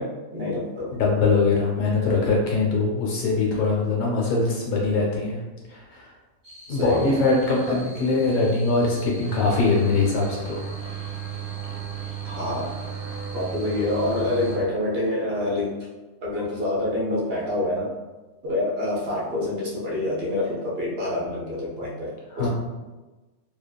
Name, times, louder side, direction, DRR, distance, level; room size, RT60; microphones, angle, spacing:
voice 1, 0.0-0.9 6.7-7.1 7.6-7.8 12.2-12.7 13.3-15.9 16.2-17.9 18.4-22.5, left 1 dB, 55° right, -5 dB, 0.8 m, -27 dB
voice 2, 1.0-5.4 5.7-6.1 6.7-10.7 22.3-22.5, left 3 dB, 70° left, -3 dB, 1.1 m, -22 dB
sound 1, 6.4-14.6, equal, 35° right, 0.3 m, -46 dB
sound 2, 9.2-14.6, right 4 dB, 85° right, 1.0 m, -34 dB
2.9 x 2.4 x 2.2 m, 1.2 s
omnidirectional pair, 1.5 m